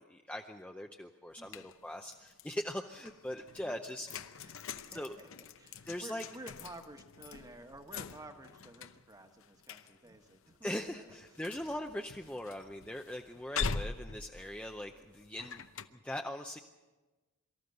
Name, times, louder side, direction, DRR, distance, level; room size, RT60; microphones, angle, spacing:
voice 1, 0.0-4.1 4.9-5.2 5.9-6.2 10.6-15.6 15.9-16.6, left 1 dB, 5° left, 3 dB, 0.6 m, -41 dB
sound 1, 1.3-2.6 3.0-15.9, left 5 dB, 60° left, 0.8 m, -44 dB
voice 2, 4.4-11.1, right 2 dB, 15° right, 6 dB, 1.3 m, -52 dB
24.0 x 13.5 x 7.9 m, 1.2 s
head